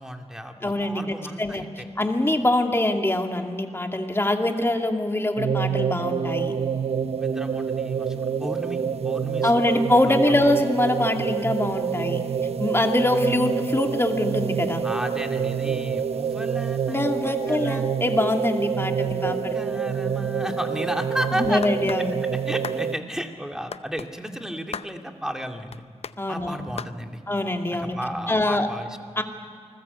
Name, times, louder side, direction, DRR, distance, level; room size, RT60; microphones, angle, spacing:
voice 1, 0.0-1.9 7.2-10.4 14.8-17.9 18.7-21.6 22.0-25.8 26.3-27.2 27.8-29.0, equal, 5° right, 4 dB, 2.4 m, -34 dB
voice 2, 0.6-1.6 2.0-6.6 9.4-12.2 12.6-14.8 16.9-19.5 21.3-22.2 26.2-26.7 27.3-28.0 28.3-28.7 29.2-29.3, left 1 dB, 20° left, 4 dB, 2.4 m, -24 dB
sound 1, 5.4-23.0, right 7 dB, 65° right, 0.6 m, -27 dB
sound 2, 21.6-22.0 22.6-22.8 23.7-24.1 24.7-24.9 25.7-26.2 26.8-27.0, left 6 dB, 65° left, 0.6 m, -35 dB
28.0 x 20.5 x 8.2 m, 2.1 s
wide cardioid pair, 95°, 11 cm